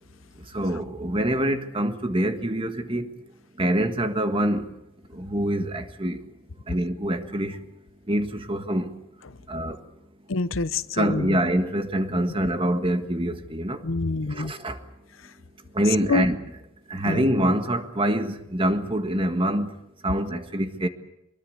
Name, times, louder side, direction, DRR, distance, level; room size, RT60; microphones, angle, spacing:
voice 1, 0.5-3.1 3.6-4.7 5.1-6.2 6.7-7.6 8.1-8.9 9.5-9.8 11.0-13.8 14.3-14.8 15.8-16.4 16.9-19.7 20.0-20.9, right 1 dB, 25° right, 1.7 m, -25 dB
voice 2, 10.3-11.4 13.8-14.5 16.1-16.3 17.1-17.3, left 3 dB, 85° left, 0.9 m, -26 dB
24.0 x 22.0 x 8.0 m
head